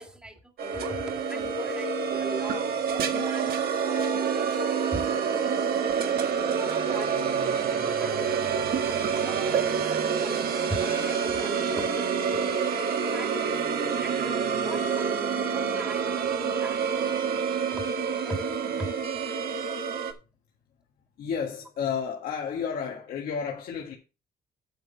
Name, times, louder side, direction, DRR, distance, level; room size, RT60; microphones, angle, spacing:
voice 1, 0.0-2.8 3.1-4.3 4.9-5.0 6.2-8.8 9.2-12.5 12.9-13.6 14.0-17.1 17.7-17.8 18.2-18.9, right 1 dB, 5° right, 1.9 m, -40 dB
sound 1, 0.6-20.1, right 6 dB, 70° right, 1.7 m, -27 dB
voice 2, 21.2-23.9, left 7 dB, 65° left, 1.8 m, -31 dB
9.1 x 8.0 x 4.2 m
cardioid pair, 165°, 16 cm